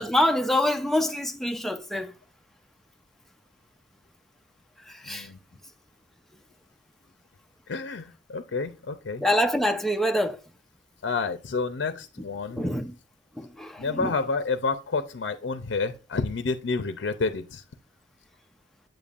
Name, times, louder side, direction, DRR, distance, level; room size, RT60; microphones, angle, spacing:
voice 1, 0.0-2.1 4.9-5.3 9.2-10.4 12.6-12.9 13.4-14.1, left 1 dB, ahead, 0.5 m, -25 dB
voice 2, 5.0-5.4 7.7-9.2 11.0-12.8 13.8-17.6, left 4 dB, 75° left, 0.5 m, -29 dB
7.8 x 6.9 x 2.4 m
head